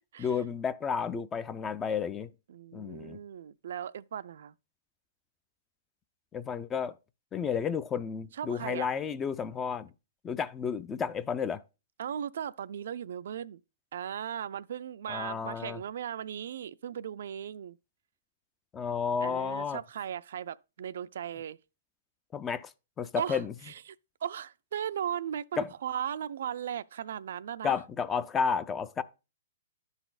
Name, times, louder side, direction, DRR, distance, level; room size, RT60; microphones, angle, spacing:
voice 1, 0.2-2.3 2.7-3.2 6.3-6.9 7.3-9.9 10.2-11.6 15.1-15.8 18.7-19.8 22.3-22.7 23.0-23.5 25.6-25.7 27.6-29.0, left 6 dB, 15° left, 0.3 m, -32 dB
voice 2, 2.5-4.5 8.3-8.9 12.0-13.6 13.9-17.8 19.2-21.6 23.2-24.0 24.2-27.8, right 9 dB, 65° right, 0.3 m, -37 dB
12.0 x 4.0 x 2.4 m
hypercardioid pair, 155°, 0 cm